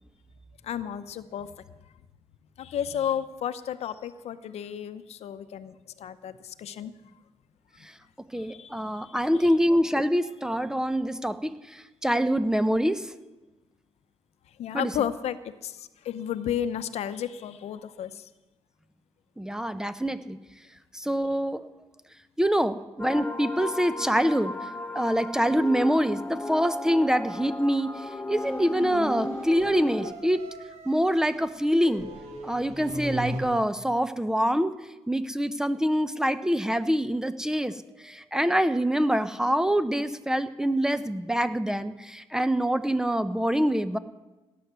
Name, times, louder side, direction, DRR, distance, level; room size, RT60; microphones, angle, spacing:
voice 1, 0.6-1.5 2.6-6.9 8.4-9.6 14.6-18.3, left 9 dB, 80° left, 12 dB, 0.7 m, -33 dB
voice 2, 8.3-13.0 14.7-14.9 19.4-20.4 20.9-21.6 22.4-24.5 24.9-27.9 28.3-30.4 30.9-32.1 32.4-34.7 35.1-37.7 38.0-44.0, equal, 5° right, 12 dB, 0.6 m, -25 dB
sound 1, 23.0-30.1, left 2 dB, 15° left, 1.0 m, -35 dB
sound 2, 28.3-33.4, right 2 dB, 90° right, 2.6 m, -39 dB
17.0 x 9.4 x 6.8 m, 1.1 s
cardioid pair, 105°, 11 cm